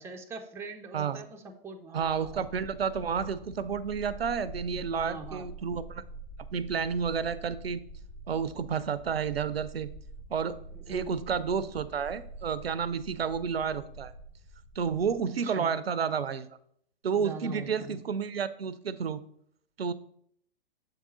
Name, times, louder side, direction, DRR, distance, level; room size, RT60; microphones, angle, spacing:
voice 1, 0.0-2.5 4.7-5.5 10.7-11.2 15.4-15.7 17.2-18.0, right 3 dB, 10° right, 3 dB, 0.5 m, -43 dB
voice 2, 1.9-6.0 6.5-7.8 8.3-9.9 10.3-10.6 10.9-14.1 14.8-16.5 17.0-19.2 19.8-19.9, right 6 dB, 90° right, 16 dB, 0.5 m, -31 dB
sound 1, 2.0-15.2, right 2 dB, 50° left, 2.5 m, -46 dB
6.8 x 3.7 x 4.1 m, 0.67 s
figure-of-eight pair, 110°, 29 cm